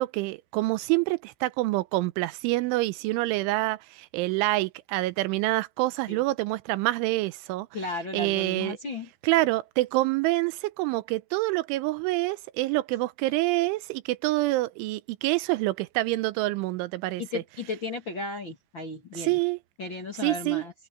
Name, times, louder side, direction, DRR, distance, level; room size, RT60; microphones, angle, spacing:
voice 1, 0.0-7.7 8.1-8.8 9.2-17.2 19.1-19.6 20.2-20.6, right 19 dB, 85° right, 3.2 m, -26 dB
voice 2, 7.7-9.1 17.2-19.4 19.8-20.7, left 3 dB, 40° left, 1.7 m, -34 dB
omnidirectional pair, 5.4 m